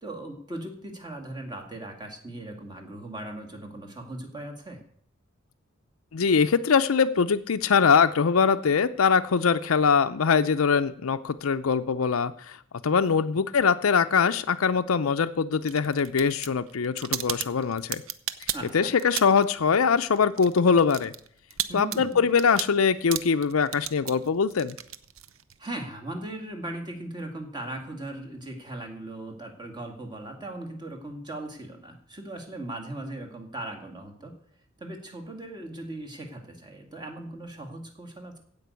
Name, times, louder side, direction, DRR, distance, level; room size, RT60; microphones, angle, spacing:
voice 1, 0.0-4.8 18.5-18.9 21.7-22.3 25.6-34.4 34.8-38.4, right 1 dB, 20° right, 2 dB, 2.1 m, -38 dB
voice 2, 6.1-12.6 12.8-18.0 18.7-21.1 21.7-24.8, left 5 dB, 90° left, 9 dB, 0.6 m, -22 dB
sound 1, 15.6-19.6 19.8-25.7, right 11 dB, 75° right, 0.7 m, -35 dB
16.0 x 5.3 x 8.2 m, 0.63 s
head